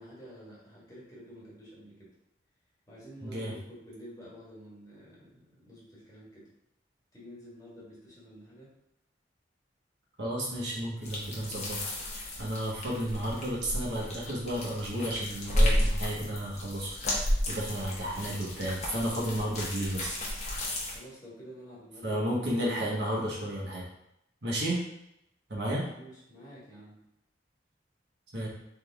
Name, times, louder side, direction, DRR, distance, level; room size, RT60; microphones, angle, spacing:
voice 1, 0.0-2.1 2.9-6.5 7.1-8.7 20.9-22.6 25.6-27.0, equal, 20° left, -7 dB, 1.7 m, -49 dB
voice 2, 3.2-3.5 10.2-11.8 12.4-16.9 17.5-20.2 22.0-23.8 24.4-24.8 25.5-25.8 28.3-28.5, right 1 dB, 65° right, -5 dB, 1.4 m, -32 dB
sound 1, 11.0-21.0, left 1 dB, 40° left, 1.1 m, -32 dB
4.2 x 3.4 x 3.5 m, 0.81 s
head